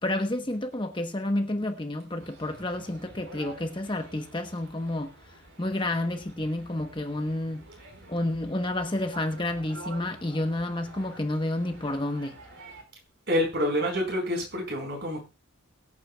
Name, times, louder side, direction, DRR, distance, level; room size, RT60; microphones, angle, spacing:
voice 1, 0.0-5.1 5.6-7.6 8.1-12.4, left 1 dB, 20° left, 1.0 m, -30 dB
sound 1, 2.2-12.8, right 2 dB, 65° right, 4.8 m, -48 dB
voice 2, 13.3-15.3, equal, 50° right, 4.6 m, -27 dB
22.5 x 8.5 x 2.3 m
head